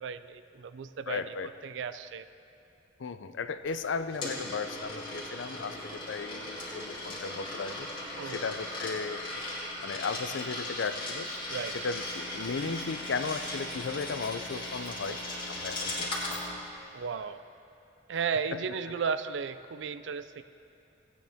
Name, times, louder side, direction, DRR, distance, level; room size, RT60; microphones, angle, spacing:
voice 1, 0.0-1.3 1.6-2.3 8.2-8.5 11.5-11.8 16.9-17.4 18.1-20.4, right 6 dB, 75° right, 12 dB, 0.4 m, -34 dB
voice 2, 1.1-1.5 3.0-7.9 8.2-9.2 9.8-11.3 11.7-15.2 15.5-16.1 18.5-18.6, left 4 dB, 80° left, 11 dB, 0.5 m, -35 dB
Coin (dropping), 3.7-16.4, left 1 dB, 25° left, 2.1 m, -38 dB
sound 1, 3.8-16.6, equal, 30° right, 1.6 m, -49 dB
17.0 x 9.2 x 3.5 m, 2.9 s
head